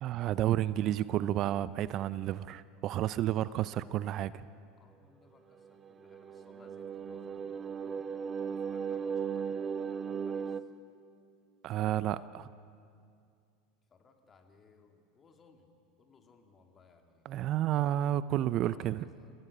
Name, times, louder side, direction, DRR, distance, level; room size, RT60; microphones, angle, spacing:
voice 1, 0.0-4.4 11.6-12.5 17.3-19.0, right 12 dB, 50° right, 17 dB, 0.5 m, -31 dB
voice 2, 4.8-8.2 8.5-10.7 13.9-17.3 17.8-19.3, left 4 dB, 30° left, 4 dB, 2.6 m, -63 dB
sound 1, 5.6-10.6, right 6 dB, 30° right, 0.9 m, -37 dB
27.0 x 17.0 x 6.7 m, 2.3 s
hypercardioid pair, 85°, 0 cm